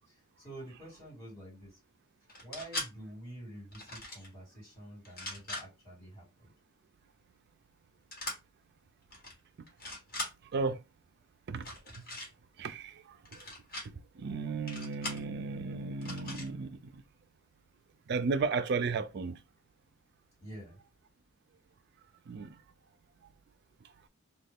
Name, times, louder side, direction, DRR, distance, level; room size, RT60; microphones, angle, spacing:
voice 1, 0.1-1.8 2.4-6.5 20.4-20.8, right 1 dB, 15° left, 2.3 m, -48 dB
sound 1, 2.3-2.9 3.7-4.3 5.0-5.6 8.1-8.4 9.1-9.3 9.7-10.3 11.6-12.3 13.3-13.9 14.7-15.2 16.0-16.5, left 1 dB, 45° left, 1.3 m, -40 dB
voice 2, 10.4-10.8 11.5-11.7 12.6-13.5 13.8-17.0 18.1-19.4 22.3-22.6 23.2-23.3, right 4 dB, 50° right, 0.4 m, -34 dB
3.1 x 2.3 x 3.5 m
head